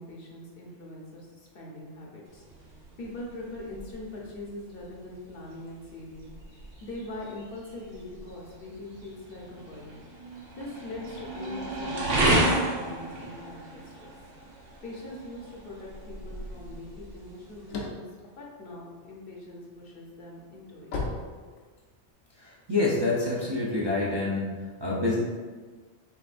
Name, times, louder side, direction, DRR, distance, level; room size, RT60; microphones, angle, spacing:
voice 1, 0.0-6.3 6.8-10.0 10.5-14.1 14.8-18.1 18.4-20.9, left 2 dB, 55° left, -3 dB, 0.9 m, -42 dB
sound 1, 2.3-17.8, right 1 dB, 80° right, 1.2 m, -33 dB
sound 2, 17.5-19.4 19.9-22.1, left 3 dB, 85° left, 1.1 m, -35 dB
voice 2, 22.3-25.2, left 2 dB, 30° right, -7 dB, 0.5 m, -27 dB
6.7 x 2.6 x 2.5 m, 1.4 s
omnidirectional pair, 1.2 m